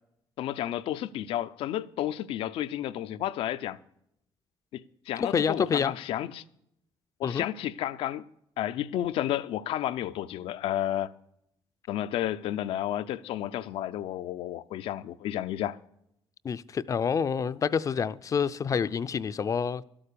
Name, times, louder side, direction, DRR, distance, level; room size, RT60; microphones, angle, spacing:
voice 1, 0.4-3.8 4.7-6.4 7.2-8.2 8.6-11.1 11.9-15.8, left 12 dB, 85° left, 0.6 m, -31 dB
voice 2, 5.2-5.9 7.2-7.5 16.4-19.8, left 6 dB, 35° left, 0.5 m, -28 dB
12.5 x 8.8 x 6.8 m
cardioid pair, 120°, 9 cm